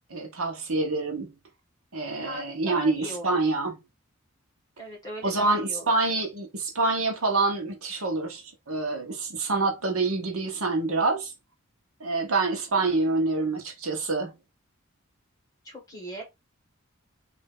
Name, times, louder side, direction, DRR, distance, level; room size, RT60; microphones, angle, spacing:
voice 1, 0.1-1.3 1.9-3.8 5.2-11.3 12.0-14.3, right 3 dB, 75° right, 1.1 m, -26 dB
voice 2, 2.2-3.4 4.8-5.9 15.6-16.2, right 1 dB, 15° left, 1.9 m, -39 dB
3.2 x 2.7 x 3.6 m
head